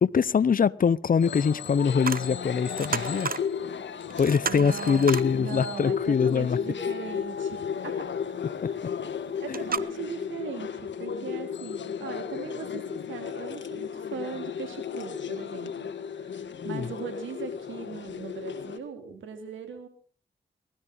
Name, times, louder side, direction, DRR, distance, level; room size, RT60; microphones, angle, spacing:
voice 1, 0.0-3.3 4.2-6.6 8.6-8.7 16.6-16.9, left 6 dB, 45° left, 0.7 m, -23 dB
sound 1, 1.2-18.8, left 7 dB, 75° left, 1.7 m, -34 dB
sound 2, 2.0-2.3 2.6-3.5 3.8-3.9 4.1-5.3 9.0-9.1 9.5-9.8, right 5 dB, 50° right, 1.1 m, -32 dB
voice 2, 4.4-8.1 8.7-8.8 9.4-19.9, right 6 dB, 90° right, 3.2 m, -39 dB
19.0 x 13.5 x 4.0 m
supercardioid pair, 45°, 19 cm